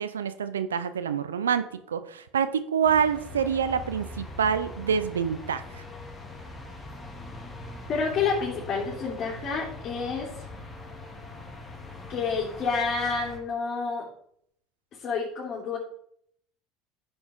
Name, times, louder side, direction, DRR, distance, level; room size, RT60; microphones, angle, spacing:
voice 1, 0.0-5.8, right 7 dB, 85° right, 12 dB, 0.5 m, -27 dB
sound 1, 2.8-13.4, left 1 dB, 20° left, 2.4 m, -42 dB
voice 2, 7.9-10.3 12.1-14.1 15.0-15.8, left 5 dB, 45° left, -5 dB, 2.9 m, -29 dB
9.9 x 7.0 x 3.7 m, 0.68 s
hypercardioid pair, 75°, 0 cm